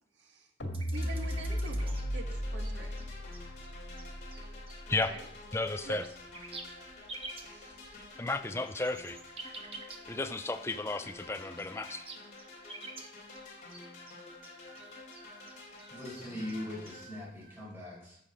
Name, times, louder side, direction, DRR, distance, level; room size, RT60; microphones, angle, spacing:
voice 1, 0.2-0.5 0.9-3.1 5.0-5.3 5.8-6.0 7.2-7.8, right 2 dB, 80° right, 3 dB, 1.6 m, -46 dB
sound 1, 0.6-6.9, equal, 80° left, 2.3 m, -37 dB
sound 2, 0.7-2.1 2.3-5.2 5.7-10.4 10.7-10.8 11.1-17.6, right 3 dB, 30° right, 1.2 m, -49 dB
sound 3, 0.9-17.1, left 2 dB, 45° left, 3.7 m, -50 dB
voice 2, 5.5-6.0 8.2-9.2 10.1-12.0, left 2 dB, 15° left, 10 dB, 0.4 m, -33 dB
voice 3, 15.9-18.2, left 1 dB, 10° right, -7 dB, 4.6 m, -41 dB
14.5 x 6.5 x 5.1 m, 0.74 s
head